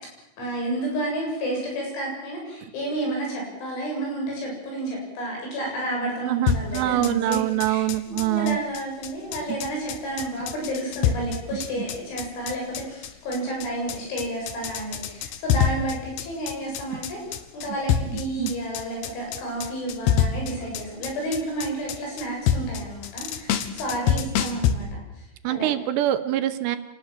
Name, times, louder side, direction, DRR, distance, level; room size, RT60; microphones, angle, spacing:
voice 1, 0.4-25.7, right 1 dB, 90° left, 0 dB, 10.5 m, -31 dB
voice 2, 6.2-8.6 18.1-18.5 25.4-26.8, right 13 dB, 75° right, 9 dB, 3.1 m, -25 dB
sound 1, 6.5-24.7, left 8 dB, 70° left, 3.2 m, -26 dB
27.5 x 19.0 x 7.5 m, 0.83 s
omnidirectional pair, 5.3 m